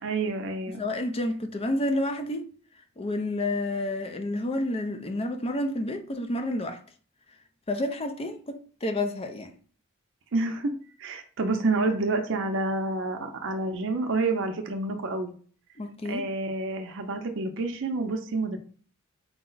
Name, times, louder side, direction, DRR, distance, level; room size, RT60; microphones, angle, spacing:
voice 1, 0.0-0.8 10.3-10.7 11.0-15.3 16.1-18.6, right 3 dB, 60° right, 0.6 m, -28 dB
voice 2, 0.7-2.5 3.0-6.8 7.7-9.5 15.8-16.3, left 1 dB, 30° left, 0.5 m, -30 dB
4.7 x 2.1 x 3.9 m
head